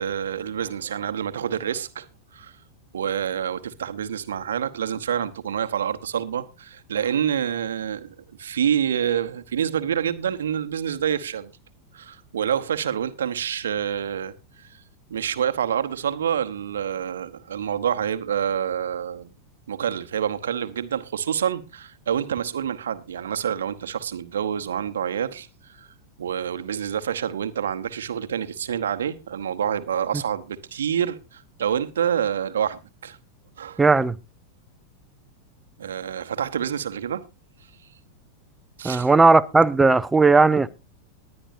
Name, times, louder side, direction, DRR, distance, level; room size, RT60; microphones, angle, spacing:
voice 1, 0.0-2.6 2.9-11.5 11.9-14.8 15.1-19.3 19.7-25.9 26.2-33.2 33.6-33.8 35.8-37.2 38.8-39.1, right 9 dB, 65° right, 1.0 m, -27 dB
voice 2, 33.8-34.2 38.8-40.7, right 3 dB, 10° right, 0.6 m, -16 dB
20.0 x 9.9 x 2.7 m
figure-of-eight pair, 90°, 0 cm